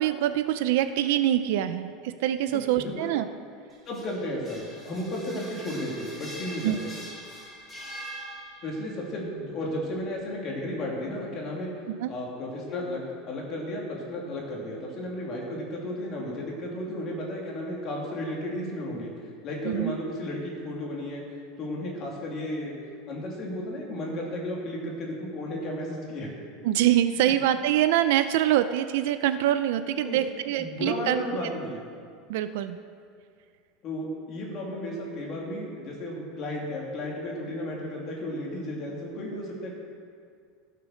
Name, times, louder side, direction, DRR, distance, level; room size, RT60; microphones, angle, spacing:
voice 1, 0.0-3.3 6.6-6.8 12.0-12.1 19.6-19.9 26.6-31.2 32.3-32.8, right 12 dB, 65° right, 11 dB, 0.5 m, -24 dB
voice 2, 2.5-3.1 3.9-6.9 8.6-11.7 12.1-13.0 13.3-19.1 19.4-21.2 21.6-22.8 23.1-26.3 30.0-30.2 30.6-31.8 33.8-39.7, left 1 dB, 30° left, -2 dB, 2.7 m, -33 dB
sound 1, 3.7-8.9, equal, 10° left, 2.5 m, -42 dB
15.5 x 6.7 x 6.4 m, 2.2 s
supercardioid pair, 165°, 0 cm